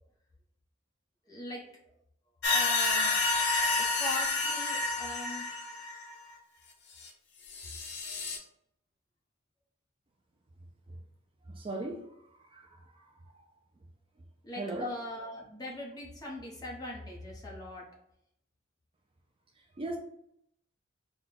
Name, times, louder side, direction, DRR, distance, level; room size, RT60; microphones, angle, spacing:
voice 1, 1.3-1.6 2.5-3.1 3.8-5.4 14.4-17.9, left 1 dB, 20° left, 0.9 m, -41 dB
sound 1, 2.4-6.1 7.0-7.1 7.5-8.4, left 3 dB, 60° left, 0.7 m, -29 dB
voice 2, 11.5-12.0 12.4-12.8 13.2-13.4 14.6-14.9 19.8-20.0, right 2 dB, 25° right, 0.3 m, -37 dB
4.0 x 2.2 x 3.9 m
head